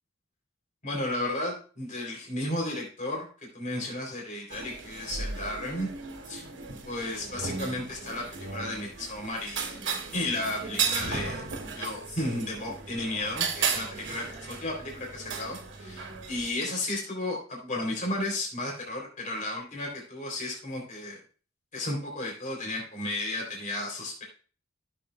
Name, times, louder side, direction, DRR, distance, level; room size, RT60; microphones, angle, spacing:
voice 1, 0.8-3.3 3.5-5.9 6.3-6.5 6.8-8.3 8.5-9.7 10.1-21.2 21.7-24.2, left 1 dB, 40° left, 0 dB, 3.1 m, -33 dB
sound 1, 4.5-16.5, right 5 dB, 65° right, 1.7 m, -35 dB
14.0 x 7.0 x 2.2 m, 0.39 s
head